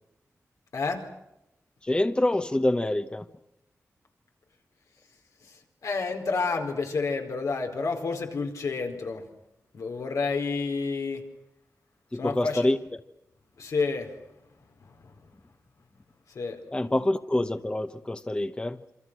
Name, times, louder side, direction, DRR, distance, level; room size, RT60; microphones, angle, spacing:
voice 1, 0.7-1.0 5.8-9.3 9.7-11.2 12.1-12.7 13.6-14.1 16.3-16.6, left 4 dB, 90° left, 3 dB, 4.6 m, -29 dB
voice 2, 1.8-3.2 12.1-12.8 16.7-18.8, left 1 dB, 15° left, 9 dB, 0.9 m, -26 dB
27.5 x 26.0 x 6.3 m, 0.89 s
wide cardioid pair, 90°, 5 cm